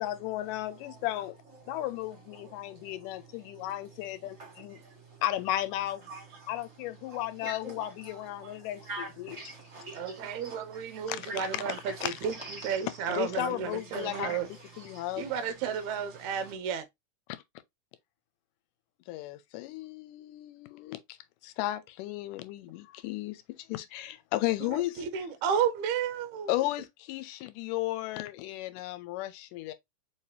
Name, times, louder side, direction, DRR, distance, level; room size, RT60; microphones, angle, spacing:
voice 1, 0.0-1.4 1.7-4.8 5.2-6.0 6.5-9.4 11.1-11.6 12.0-12.1 13.1-14.4 14.8-15.3 19.1-21.0 21.4-25.1 26.5-29.7, left 15 dB, 85° left, 2.1 m, -34 dB
voice 2, 0.7-1.1 1.7-1.8 2.4-3.8 4.4-5.2 6.1-6.5 7.0-11.9 12.2-13.2 13.9-15.4 16.2-16.5, right 2 dB, 30° right, 1.5 m, -46 dB
voice 3, 9.9-11.8 12.0-14.5 15.2-16.9 24.6-26.5, right 7 dB, 75° right, 1.9 m, -32 dB
4.8 x 3.2 x 2.7 m
omnidirectional pair, 3.8 m